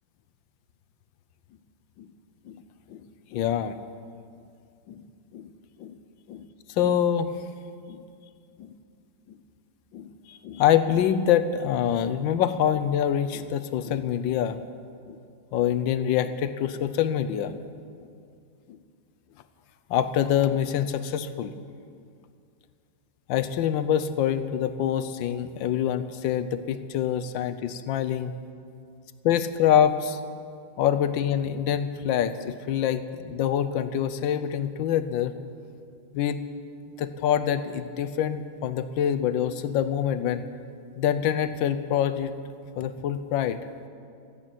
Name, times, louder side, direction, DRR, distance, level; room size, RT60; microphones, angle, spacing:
voice 1, 3.3-3.7 4.9-5.0 5.3-5.5 5.8-5.9 6.3-6.5 6.8-7.3 7.9-8.0 8.6-8.7 9.9-14.6 15.1-15.2 15.5-17.6 18.7-18.8 19.9-21.5 23.3-28.3 29.2-30.2 30.8-35.3 36.1-36.4 37.0-40.5 41.0-42.3 42.8-43.6, left 9 dB, 75° left, 11 dB, 1.4 m, -25 dB
13.5 x 10.5 x 9.1 m, 2.3 s
omnidirectional pair, 2.2 m